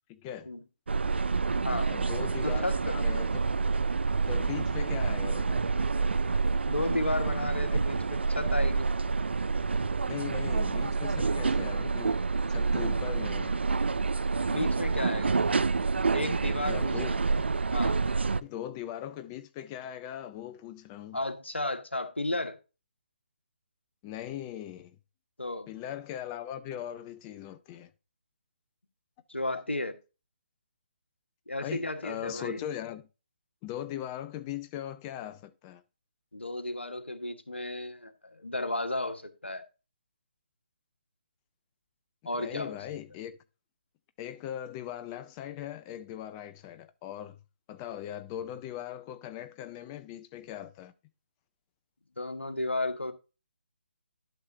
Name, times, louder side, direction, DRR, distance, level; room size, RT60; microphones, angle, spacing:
voice 1, 0.1-0.5 1.9-3.6 4.3-5.7 7.7-7.8 10.0-13.5 16.6-17.1 18.4-21.2 24.0-25.0 25.7-27.9 31.6-33.0 33.6-35.8 42.4-43.4 44.2-47.4 47.7-50.9, left 11 dB, 15° left, 0.4 m, -40 dB
sound 1, 0.9-18.4, right 4 dB, 70° right, 0.4 m, -28 dB
voice 2, 2.4-3.0 6.7-8.9 14.5-15.4 16.1-17.2 17.7-18.0 21.1-22.6 25.4-25.7 29.3-30.0 31.5-32.6 36.3-39.6 42.2-42.8 52.2-53.1, left 2 dB, 85° left, 1.4 m, -33 dB
11.5 x 6.4 x 2.7 m
figure-of-eight pair, 145°, 6 cm